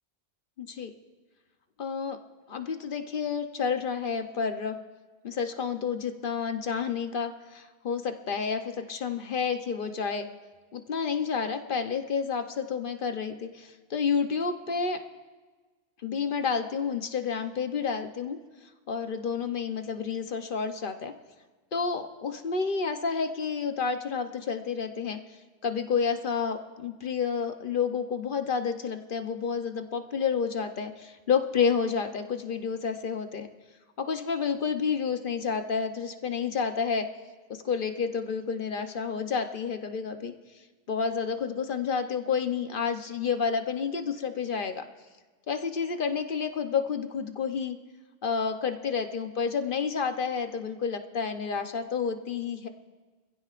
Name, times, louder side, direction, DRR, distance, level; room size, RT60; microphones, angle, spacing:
voice 1, 0.6-0.9 1.8-2.2 2.5-4.8 5.2-10.3 10.7-15.0 16.0-18.4 18.9-21.1 21.7-25.2 25.6-33.5 34.0-37.1 37.5-40.3 40.9-44.8 45.5-47.8 48.2-52.7, left 6 dB, 50° left, 7 dB, 0.9 m, -30 dB
24.5 x 15.5 x 2.5 m, 1.3 s
omnidirectional pair, 1.2 m